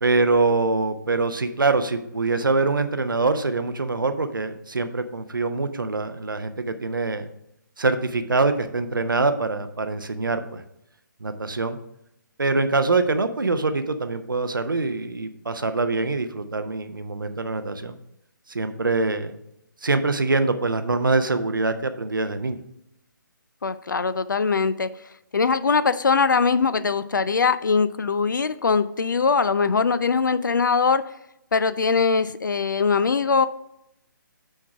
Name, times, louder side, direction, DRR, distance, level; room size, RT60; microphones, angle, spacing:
voice 1, 0.0-7.3 7.8-10.6 11.2-11.8 12.4-18.0 18.5-19.3 19.8-22.6, right 3 dB, 75° right, 9 dB, 0.7 m, -24 dB
voice 2, 23.6-24.9 25.3-31.0 31.5-33.5, left 5 dB, 65° left, 14 dB, 0.4 m, -21 dB
6.4 x 4.7 x 5.8 m, 0.81 s
figure-of-eight pair, 140°, 11 cm